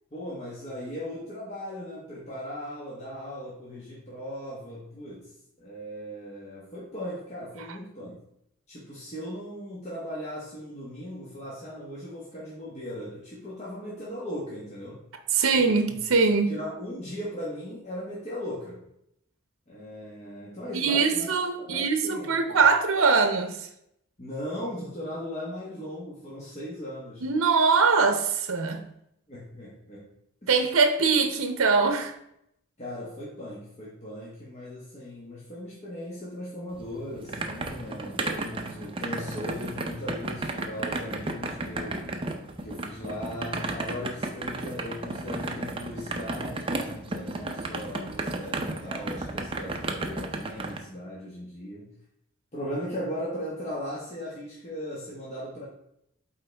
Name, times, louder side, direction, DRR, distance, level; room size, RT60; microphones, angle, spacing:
voice 1, 0.1-5.3 5.6-8.2 8.7-15.0 15.4-16.0 16.5-18.9 19.7-21.3 21.6-22.6 24.2-27.2 29.3-30.1 30.4-30.5 32.8-42.0 42.6-51.9 52.5-55.7, equal, 30° left, 1.3 m, -38 dB
voice 2, 15.3-16.5 20.7-23.6 27.2-28.9 30.5-32.1, right 4 dB, 75° right, 0.7 m, -22 dB
sound 1, 36.8-50.8, right 2 dB, 25° right, 0.6 m, -33 dB
8.1 x 4.0 x 3.4 m
head